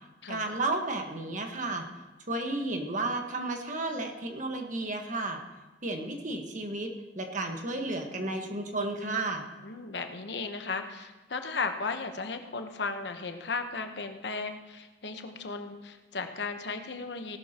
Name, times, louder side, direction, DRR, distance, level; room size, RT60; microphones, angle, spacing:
voice 1, 0.3-1.8 2.3-5.4 5.8-9.4, right 2 dB, 45° right, 4 dB, 1.5 m, -32 dB
voice 2, 9.6-17.4, left 4 dB, 75° left, 6 dB, 1.1 m, -35 dB
18.0 x 11.5 x 3.0 m, 1.2 s
head